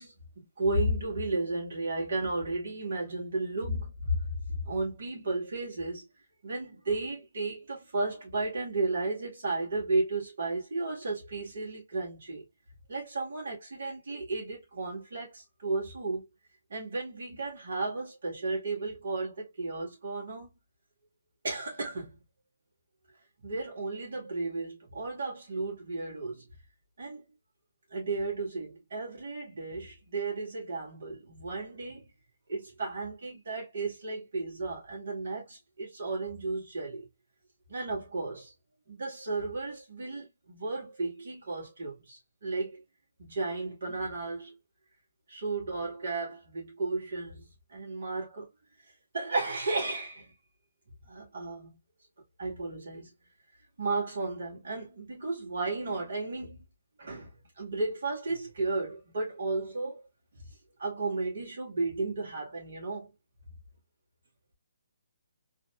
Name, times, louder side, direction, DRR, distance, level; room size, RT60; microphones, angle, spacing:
voice 1, 0.0-4.2 4.7-6.1 6.4-12.5 12.9-16.2 16.7-20.5 21.4-22.2 23.4-26.4 27.0-27.2 27.9-32.1 32.5-37.1 37.7-38.5 38.9-42.8 43.2-44.5 45.3-47.4 47.7-48.5 49.1-50.3 51.1-51.7 52.4-53.1 53.8-56.6 57.0-57.3 57.6-60.0 60.8-63.1, right 2 dB, 60° right, 2.2 m, -34 dB
3.9 x 3.0 x 2.3 m
figure-of-eight pair, 140°, 0 cm